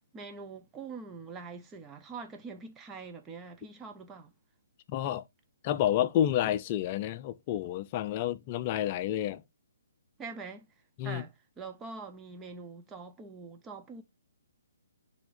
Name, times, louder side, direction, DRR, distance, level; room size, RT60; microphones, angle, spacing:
voice 1, 0.1-4.3 10.2-10.7 11.0-14.0, right 4 dB, 15° right, 0.8 m, -44 dB
voice 2, 4.9-5.2 5.6-9.4 11.0-11.2, left 11 dB, 30° left, 0.5 m, -29 dB
10.5 x 3.5 x 2.6 m
hypercardioid pair, 150°, 0 cm